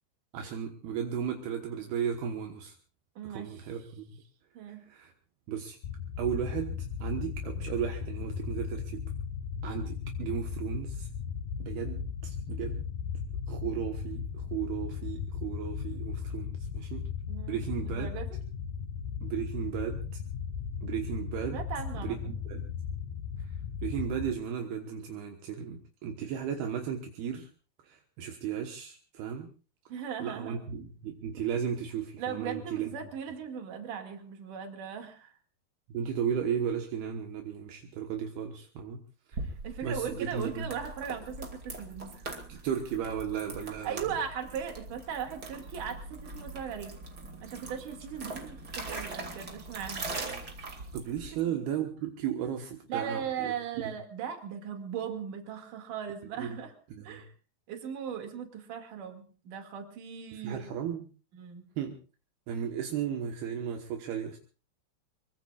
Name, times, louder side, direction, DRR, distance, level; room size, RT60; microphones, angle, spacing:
voice 1, 0.3-2.7 3.3-4.2 4.7-5.1 5.5-5.8 6.2-9.0 9.6-11.1 11.6-12.9 13.5-17.1 17.5-18.1 19.2-20.0 20.8-21.6 22.0-22.7 23.8-27.5 27.8-29.5 30.2-32.9 35.9-39.0 39.3-39.4 39.8-40.7 42.5-44.0 50.9-53.5 56.4-56.6 56.9-57.2 60.4-61.1 61.8-62.0 62.5-64.4, right 8 dB, 75° right, 3 dB, 3.2 m, -35 dB
voice 2, 3.2-3.7 4.6-4.8 17.3-18.4 21.5-22.4 29.9-30.6 32.2-35.3 39.4-42.6 43.7-47.0 47.4-50.1 51.3-51.6 52.9-56.7 57.0-57.3 57.7-60.7 61.3-61.6, right 8 dB, 55° right, 5 dB, 3.7 m, -38 dB
sound 1, 5.8-24.3, left 6 dB, 65° left, 2.3 m, -36 dB
sound 2, 39.3-51.4, right 3 dB, 30° right, 2.5 m, -41 dB
24.5 x 23.0 x 2.5 m, 0.37 s
omnidirectional pair, 4.7 m